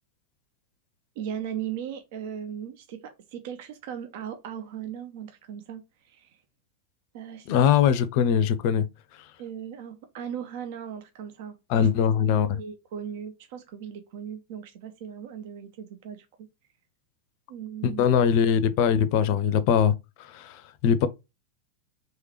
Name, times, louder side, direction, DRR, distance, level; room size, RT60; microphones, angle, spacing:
voice 1, 1.2-6.4 7.1-7.5 9.4-11.9 12.3-16.3 17.5-18.0, right 9 dB, 50° right, 0.5 m, -38 dB
voice 2, 7.5-8.9 11.7-12.5 17.8-19.9 20.2-21.1, left 8 dB, 45° left, 0.5 m, -22 dB
3.7 x 3.1 x 2.9 m
figure-of-eight pair, 90°, 0 cm